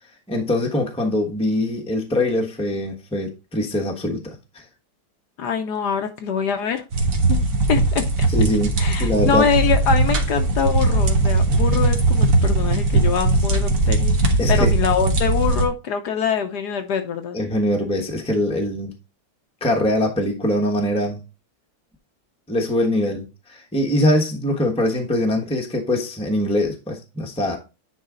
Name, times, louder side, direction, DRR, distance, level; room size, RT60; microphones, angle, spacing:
voice 1, 0.3-4.4 8.3-9.4 14.4-14.7 17.3-18.9 19.6-21.2 22.5-27.6, left 1 dB, 5° left, 0.9 m, -22 dB
voice 2, 5.4-6.8 7.3-7.4 7.7-8.0 8.8-17.4, left 7 dB, 70° left, 1.3 m, -24 dB
sound 1, 6.9-15.6, right 2 dB, 50° right, 1.4 m, -19 dB
9.6 x 3.7 x 3.8 m
omnidirectional pair, 2.0 m